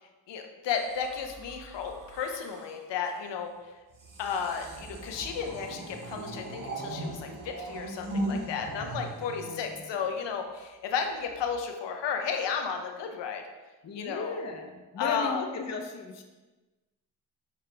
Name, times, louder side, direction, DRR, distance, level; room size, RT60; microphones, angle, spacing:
voice 1, 0.3-3.5 4.2-13.4 13.9-14.4 15.0-15.4, left 6 dB, 85° left, 4 dB, 0.6 m, -33 dB
sound 1, 0.7-2.8 3.9-10.3 11.2-11.6, right 1 dB, 50° right, 0.9 m, -39 dB
voice 2, 9.3-9.8 13.8-16.2, left 4 dB, 40° left, 3 dB, 0.6 m, -36 dB
6.7 x 2.3 x 3.2 m, 1.2 s
cardioid pair, 55°, 41 cm